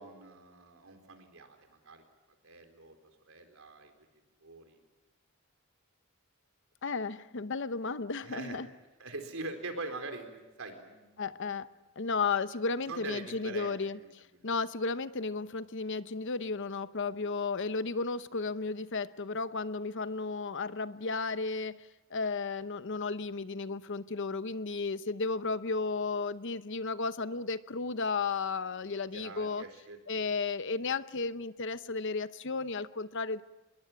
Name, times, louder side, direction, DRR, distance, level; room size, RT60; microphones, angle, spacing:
voice 1, 0.0-2.0 2.4-3.0 3.2-3.9 4.4-4.8 8.2-8.6 9.0-11.5 12.9-14.4 29.1-30.3, right 2 dB, 70° right, 6 dB, 4.3 m, -44 dB
voice 2, 6.8-8.7 11.2-11.7 12.0-29.6 30.1-33.4, left 4 dB, 60° left, 13 dB, 0.8 m, -34 dB
26.0 x 21.5 x 9.1 m, 1.1 s
head